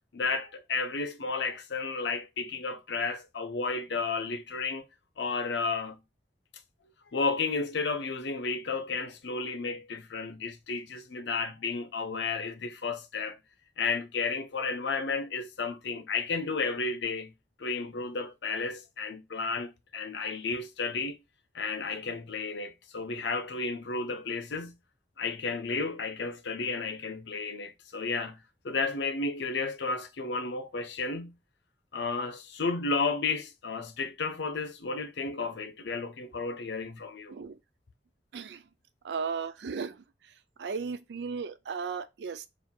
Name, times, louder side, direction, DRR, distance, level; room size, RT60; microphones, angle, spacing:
voice 1, 0.1-4.9 5.2-6.0 7.1-13.4 13.8-17.3 17.6-21.2 21.5-24.7 25.2-31.3 31.9-37.3, left 4 dB, 80° left, 0.6 m, -32 dB
voice 2, 39.0-42.5, right 5 dB, 70° right, 0.4 m, -36 dB
3.7 x 2.4 x 4.4 m
head